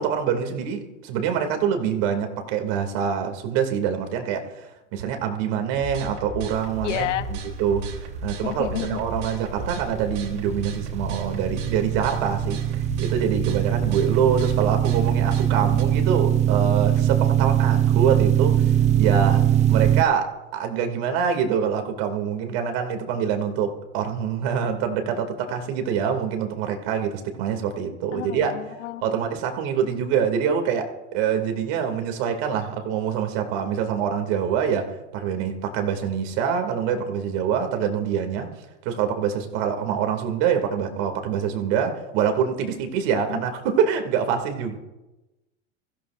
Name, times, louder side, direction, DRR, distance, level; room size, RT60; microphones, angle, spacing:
voice 1, 0.0-28.5 29.0-38.5 38.8-44.8, right 7 dB, 60° right, 2.5 m, -25 dB
sound 1, 5.7-15.8, right 3 dB, 75° right, 3.2 m, -35 dB
voice 2, 6.8-7.3 8.4-9.1 28.1-29.3 43.3-43.4, left 14 dB, 85° left, 1.1 m, -30 dB
sound 2, 9.2-20.0, right 10 dB, 20° right, 0.5 m, -22 dB
24.5 x 14.5 x 2.5 m
supercardioid pair, 125°, 36 cm